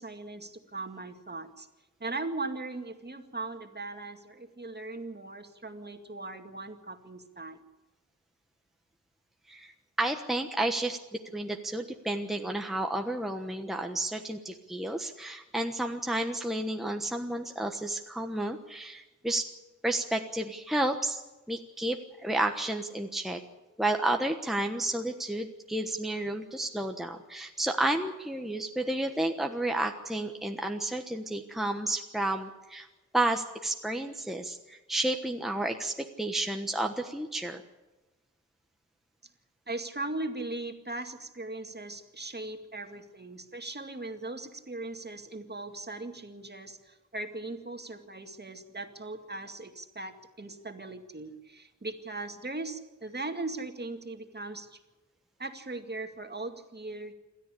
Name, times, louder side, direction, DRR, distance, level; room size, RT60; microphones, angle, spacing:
voice 1, 0.0-1.7 2.0-7.6 39.7-54.8 55.4-57.1, right 2 dB, 30° right, 5 dB, 2.2 m, -39 dB
voice 2, 9.5-19.5 19.8-21.2 21.5-23.4 23.8-32.9 33.1-37.6, right 1 dB, ahead, 4 dB, 1.2 m, -31 dB
27.5 x 13.5 x 8.4 m, 1.1 s
wide cardioid pair, 110°, 31 cm